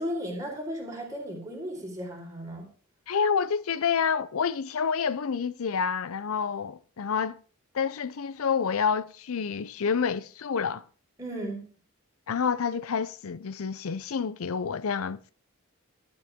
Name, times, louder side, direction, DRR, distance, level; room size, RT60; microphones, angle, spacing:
voice 1, 0.0-2.7 11.2-11.6, equal, 15° right, 4.5 m, -35 dB
voice 2, 3.1-7.4 7.7-10.8 12.3-15.2, left 6 dB, 75° left, 0.5 m, -28 dB
14.5 x 9.5 x 3.6 m
head